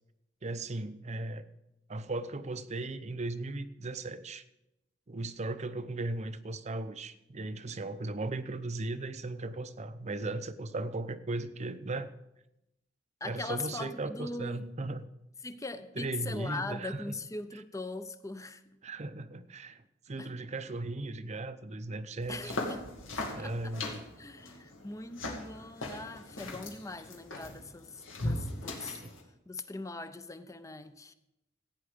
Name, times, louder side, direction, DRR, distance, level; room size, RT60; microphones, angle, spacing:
voice 1, 0.4-1.5 1.9-4.4 5.1-12.1 13.2-15.0 16.0-17.1 18.8-22.5 23.3-24.0 29.0-29.1, right 2 dB, 35° right, 0.7 m, -37 dB
voice 2, 13.2-14.7 15.4-18.6 20.2-20.3 22.3-22.9 23.2-23.8 24.2-29.0 29.5-31.1, left 2 dB, 15° left, 0.6 m, -41 dB
sound 1, 22.2-29.2, left 2 dB, 90° left, 2.5 m, -39 dB
16.0 x 9.1 x 5.1 m
head